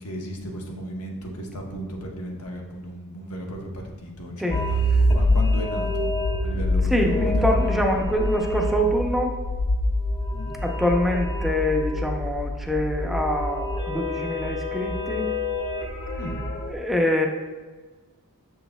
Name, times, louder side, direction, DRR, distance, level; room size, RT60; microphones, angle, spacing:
voice 1, 0.0-6.1 6.4-7.9 10.3-10.5 16.2-16.4, equal, 85° left, 0 dB, 1.0 m, -35 dB
sound 1, 4.5-16.7, left 1 dB, 25° left, 0.9 m, -25 dB
voice 2, 6.9-9.3 10.6-15.3 16.7-17.3, equal, ahead, 1 dB, 0.6 m, -24 dB
7.0 x 6.1 x 2.3 m, 1.3 s
head